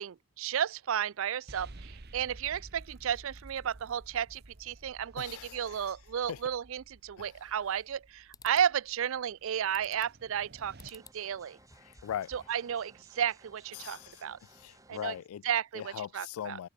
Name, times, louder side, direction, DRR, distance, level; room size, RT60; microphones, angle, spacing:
voice 1, 0.0-11.6 12.3-14.4 14.9-15.1 15.4-16.6, right 9 dB, 70° right, 0.4 m, -33 dB
sound 1, 1.5-10.9, right 2 dB, 45° right, 1.2 m, -53 dB
voice 2, 5.2-5.8 6.3-6.4 7.2-7.3 11.8-12.3 13.7-15.4 15.7-16.7, left 10 dB, 85° left, 0.3 m, -40 dB
sound 2, 7.3-8.0 8.3-8.7 9.7-10.2 10.8-11.2 11.6-12.6, left 4 dB, 15° left, 2.5 m, -55 dB
sound 3, 10.8-15.2, right 2 dB, 15° right, 3.8 m, -60 dB
head